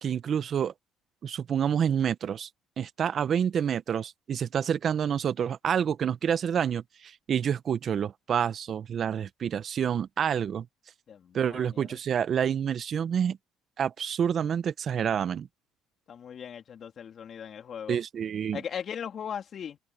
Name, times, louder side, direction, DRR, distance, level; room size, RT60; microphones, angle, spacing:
voice 1, 0.0-0.7 1.2-2.5 2.8-10.7 11.3-13.4 13.8-15.5 17.9-18.6, right 8 dB, 50° right, 1.2 m, -28 dB
voice 2, 11.1-12.0 16.1-18.0 18.5-19.8, left 8 dB, 50° left, 3.5 m, -38 dB
supercardioid pair, 75°, 0 cm